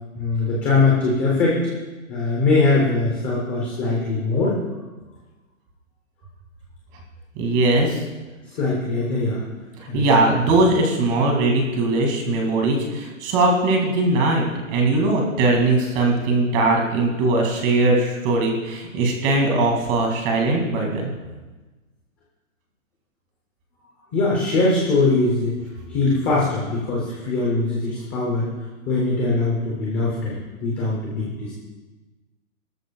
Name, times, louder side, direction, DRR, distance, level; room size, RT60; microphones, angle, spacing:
voice 1, 0.1-1.6 2.1-4.6 8.5-9.4 9.9-10.0 24.1-25.5 25.9-28.5 28.9-30.3 30.6-31.5, left 3 dB, 5° left, -5 dB, 0.6 m, -21 dB
voice 2, 7.4-8.0 9.9-21.1, right 2 dB, 20° right, 1 dB, 2.1 m, -20 dB
18.0 x 13.0 x 2.3 m, 1.2 s
hypercardioid pair, 165°, 41 cm